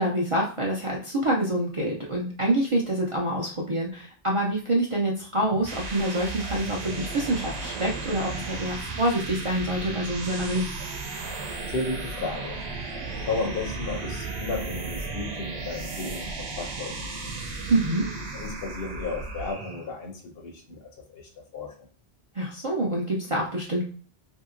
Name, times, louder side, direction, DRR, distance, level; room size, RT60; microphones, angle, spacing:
voice 1, 0.0-10.7 17.7-18.0 22.4-23.8, right 1 dB, 45° right, -3 dB, 0.4 m, -26 dB
sound 1, 5.4-19.9, right 3 dB, 90° right, 0.9 m, -35 dB
voice 2, 11.7-12.6 13.3-17.1 17.4-17.5 18.0-18.1 18.3-21.9, left 3 dB, 70° left, 3 dB, 0.9 m, -34 dB
2.8 x 2.7 x 2.5 m, 0.41 s
omnidirectional pair, 1.1 m